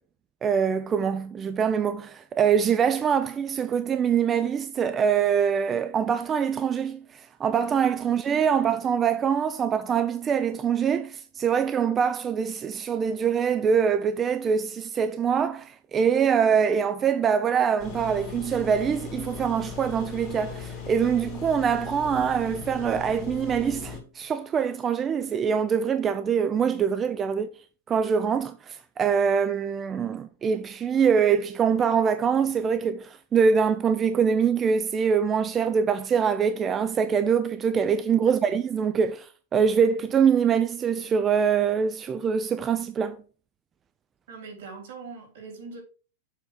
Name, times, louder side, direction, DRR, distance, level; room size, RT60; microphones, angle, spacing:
voice 1, 0.4-27.5 27.9-43.2, right 7 dB, 15° right, 0.3 m, -24 dB
sound 1, 17.8-24.0, left 5 dB, 25° left, 2.4 m, -38 dB
voice 2, 38.2-38.6 44.3-45.8, right 4 dB, 65° right, 3.2 m, -42 dB
7.2 x 3.5 x 6.3 m
supercardioid pair, 175°, 0 cm